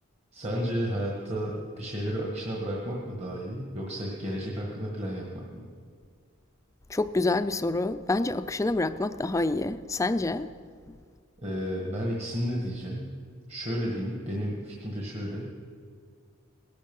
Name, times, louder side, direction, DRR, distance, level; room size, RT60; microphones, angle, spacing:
voice 1, 0.3-5.4 11.4-13.2 13.5-15.5, equal, 30° right, 1.7 m, -32 dB
voice 2, 6.9-10.5 10.9-11.0, left 2 dB, 15° left, 0.4 m, -27 dB
18.0 x 12.0 x 5.4 m
head